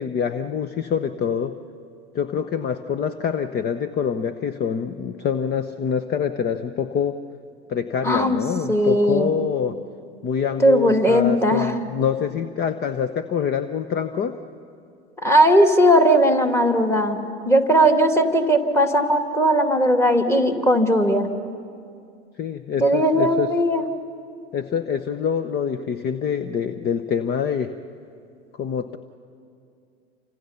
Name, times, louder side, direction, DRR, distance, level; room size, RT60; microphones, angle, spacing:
voice 1, 0.0-1.5 2.1-7.2 7.7-9.8 10.2-14.4 22.4-23.5 24.5-27.7 28.6-29.0, left 7 dB, 30° left, 11 dB, 0.9 m, -25 dB
voice 2, 8.0-8.4 8.7-9.3 10.6-11.7 15.2-17.2 17.5-21.3 22.8-23.8, equal, 10° left, 5 dB, 2.2 m, -18 dB
29.5 x 26.5 x 5.7 m, 2.4 s
figure-of-eight pair, 85°, 33 cm